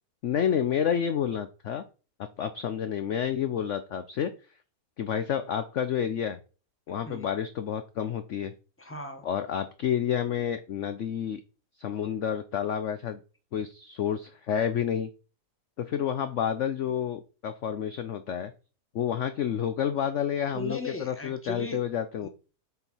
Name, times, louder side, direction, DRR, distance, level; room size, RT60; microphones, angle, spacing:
voice 1, 0.2-1.8 2.4-4.3 5.0-6.4 6.9-8.5 9.2-11.4 11.8-13.2 13.5-15.1 15.8-18.5 18.9-22.3, left 9 dB, 60° left, 0.9 m, -29 dB
voice 2, 6.9-7.3 8.8-9.3 20.5-21.8 22.2-22.3, left 1 dB, 10° left, 1.5 m, -37 dB
8.0 x 4.6 x 5.6 m
omnidirectional pair, 1.7 m